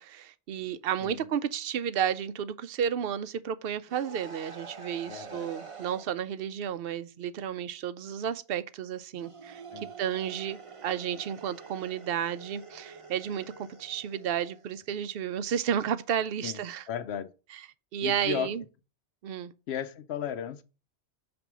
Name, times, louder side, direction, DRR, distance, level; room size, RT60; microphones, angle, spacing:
voice 1, 0.0-9.6 10.0-16.8 17.9-18.6 19.2-19.5, right 9 dB, 65° right, 0.7 m, -32 dB
sound 1, 3.9-6.1 9.1-14.7, right 4 dB, 30° right, 0.8 m, -47 dB
voice 2, 5.1-5.5 9.7-9.9 16.4-16.6 16.9-17.3 18.0-18.5 19.7-20.6, left 9 dB, 70° left, 0.9 m, -35 dB
6.8 x 3.4 x 5.9 m
omnidirectional pair, 1.2 m